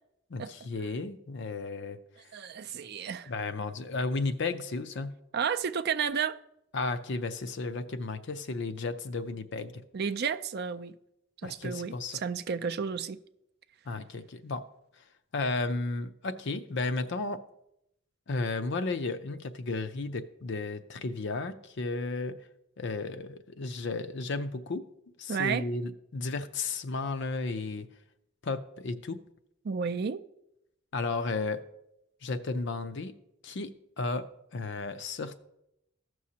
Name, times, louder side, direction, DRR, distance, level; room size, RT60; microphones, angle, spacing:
voice 1, 0.3-2.0 3.3-5.1 6.7-9.7 11.4-12.2 13.9-14.6 15.3-17.4 18.3-22.4 22.8-24.9 25.2-27.9 28.4-29.2 30.9-31.6 32.2-33.1 33.4-33.7 34.0-35.4, left 3 dB, 55° left, 10 dB, 0.5 m, -33 dB
voice 2, 2.3-3.3 5.3-6.4 9.9-11.0 11.4-13.2 25.3-25.7 29.6-30.2, right 6 dB, 50° right, 11 dB, 0.4 m, -32 dB
15.5 x 6.2 x 2.8 m, 0.81 s
head